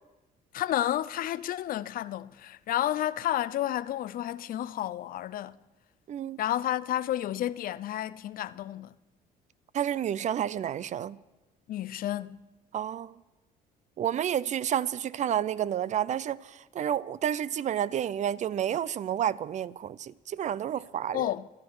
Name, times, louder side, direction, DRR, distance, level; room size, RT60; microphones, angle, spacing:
voice 1, 0.5-5.6 6.4-9.0 11.7-12.4 21.1-21.5, left 12 dB, 55° left, 0.5 m, -31 dB
voice 2, 9.7-11.2 12.7-13.1 14.0-21.3, right 10 dB, 45° right, 0.5 m, -30 dB
27.0 x 10.5 x 4.7 m
cardioid pair, 110°, 17 cm